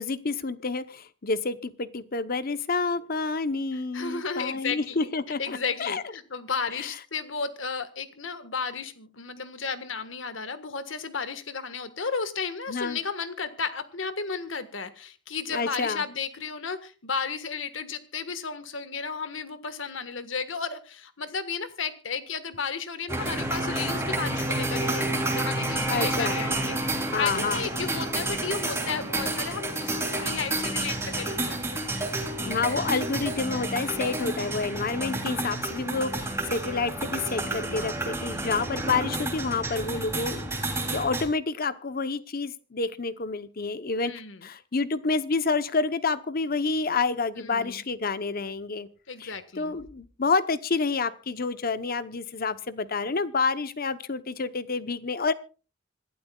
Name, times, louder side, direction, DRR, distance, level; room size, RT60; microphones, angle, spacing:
voice 1, 0.0-6.0 6.8-6.9 12.7-13.0 15.5-16.0 25.9-26.4 27.1-27.6 32.4-44.1 44.4-48.9 49.2-55.3, left 4 dB, 50° left, 13 dB, 0.9 m, -29 dB
voice 2, 3.9-5.1 5.4-31.8 44.0-44.5 47.4-47.8 49.1-49.8, left 5 dB, 80° left, 11 dB, 1.5 m, -33 dB
sound 1, 23.1-41.2, right 2 dB, 15° right, 3.1 m, -30 dB
26.5 x 12.0 x 2.4 m, 0.35 s
head